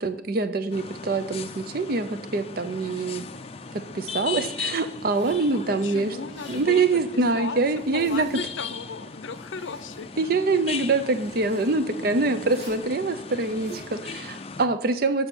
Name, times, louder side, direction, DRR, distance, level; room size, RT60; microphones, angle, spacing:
voice 1, 0.0-3.2 3.7-6.2 6.5-8.3 10.2-15.3, right 3 dB, 50° right, 11 dB, 0.6 m, -25 dB
sound 1, 0.7-14.7, left 5 dB, 30° left, 0.4 m, -38 dB
Zipper (clothing), 4.9-5.5 6.2-6.7 7.7-8.6 9.1-10.1 11.1-11.7 12.4-12.8 13.4-13.9, right 4 dB, 85° right, 3.8 m, -47 dB
voice 2, 5.5-10.1, left 5 dB, 85° left, 13 dB, 0.6 m, -37 dB
8.4 x 5.5 x 6.1 m, 0.80 s
head